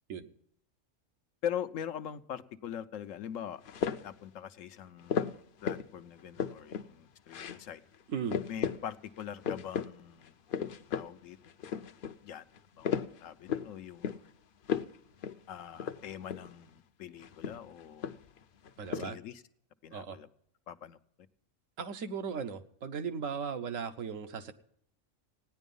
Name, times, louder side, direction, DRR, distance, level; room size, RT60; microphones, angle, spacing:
voice 1, 1.4-3.6 4.0-7.8 8.5-10.4 10.9-11.4 12.2-12.5 12.8-12.9 13.2-14.2 15.5-18.1 18.9-19.4 19.8-20.3 20.7-21.0, left 9 dB, 75° left, 11 dB, 1.1 m, -42 dB
sound 1, 3.6-4.2 5.1-5.9 6.2-6.9 7.3-7.6 7.9-8.0 8.3-8.8 9.2-9.9 10.2-11.1 11.4-12.1 12.6-13.7 14.0-14.3 14.6-15.0 15.2-15.4 15.7-16.5 17.2-18.4 18.6-19.1, left 8 dB, 55° left, 0.6 m, -35 dB
voice 2, 8.1-8.4 18.8-19.2 19.9-20.2 21.8-24.5, right 6 dB, 80° right, 8 dB, 1.3 m, -37 dB
15.5 x 10.0 x 5.3 m, 0.71 s
omnidirectional pair, 1.4 m